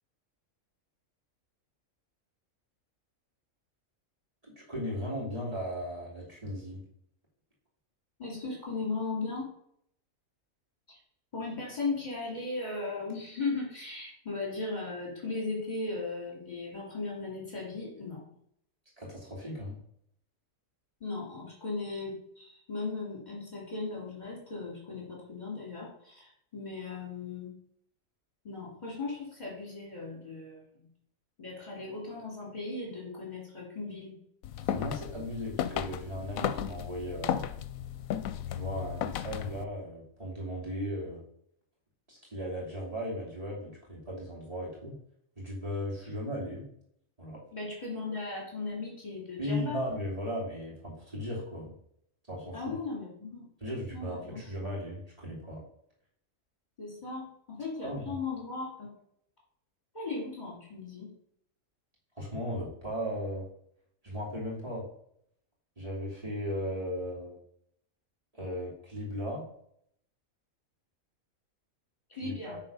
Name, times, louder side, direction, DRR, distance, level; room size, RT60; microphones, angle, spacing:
voice 1, 4.4-6.8 19.0-19.8 34.6-37.5 38.5-41.2 42.1-44.9 45.4-46.7 47.2-47.4 49.4-51.7 52.3-52.7 53.6-55.6 57.8-58.2 62.2-63.4 64.0-64.8 65.8-67.4 68.3-69.4 72.2-72.6, equal, 25° right, -6 dB, 3.0 m, -37 dB
voice 2, 8.2-9.5 10.9-11.0 11.3-18.2 21.0-27.5 28.4-30.9 31.4-34.2 47.5-49.8 52.5-53.4 53.9-54.4 56.8-59.0 59.9-61.1 72.1-72.6, left 3 dB, 30° left, -4 dB, 3.0 m, -37 dB
sound 1, 34.4-39.6, left 10 dB, 80° left, 1.0 m, -34 dB
9.6 x 4.1 x 5.5 m, 0.70 s
omnidirectional pair, 1.4 m